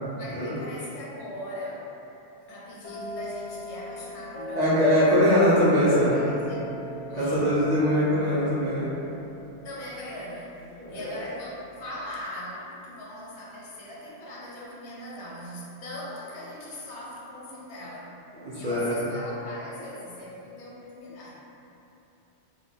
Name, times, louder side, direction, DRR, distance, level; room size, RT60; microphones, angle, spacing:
voice 1, 0.1-1.9 2.5-5.4 6.1-6.7 7.1-7.4 9.6-18.2 18.5-21.3, left 1 dB, 85° left, -5 dB, 0.9 m, -40 dB
sound 1, 2.8-10.6, left 1 dB, 55° left, 0.4 m, -39 dB
voice 2, 4.5-6.2 7.2-8.9 10.8-11.2 18.3-19.0, equal, 55° right, -10 dB, 0.5 m, -22 dB
2.3 x 2.2 x 3.2 m, 2.9 s
omnidirectional pair, 1.2 m